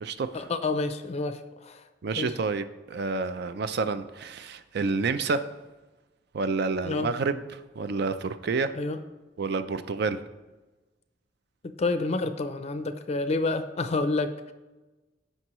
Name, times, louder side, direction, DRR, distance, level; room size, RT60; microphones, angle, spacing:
voice 1, 0.3-1.8 2.2-2.3 6.8-7.1 8.7-9.0 11.6-14.5, left 3 dB, 35° left, 10 dB, 0.4 m, -29 dB
voice 2, 2.0-5.4 6.3-8.7 9.4-10.2, right 4 dB, 60° right, 11 dB, 0.4 m, -29 dB
15.5 x 5.4 x 3.0 m, 1.2 s
head